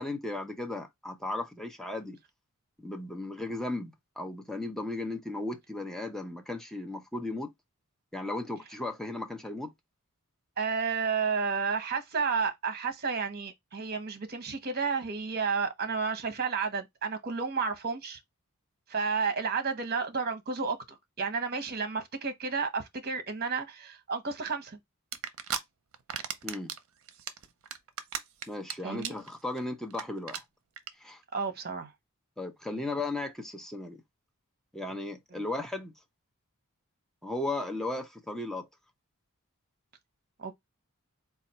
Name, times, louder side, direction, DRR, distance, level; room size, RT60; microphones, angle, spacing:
voice 1, 0.0-2.2 2.8-7.5 8.1-9.7 26.4-26.7 28.5-30.4 31.0-31.2 32.4-34.0 34.7-35.9 37.2-38.7, left 2 dB, ahead, 0.7 m, -36 dB
voice 2, 10.6-18.2 18.9-24.8 28.8-29.1 31.3-31.9 35.3-35.4 40.4-40.5, right 5 dB, 45° right, 1.0 m, -31 dB
sound 1, 25.1-25.6 25.9-26.8 27.1-28.7 29.0-29.3 29.6-29.7 29.9-30.0 30.3-30.4 30.8-30.9, right 8 dB, 65° right, 0.6 m, -34 dB
4.1 x 2.4 x 4.2 m
head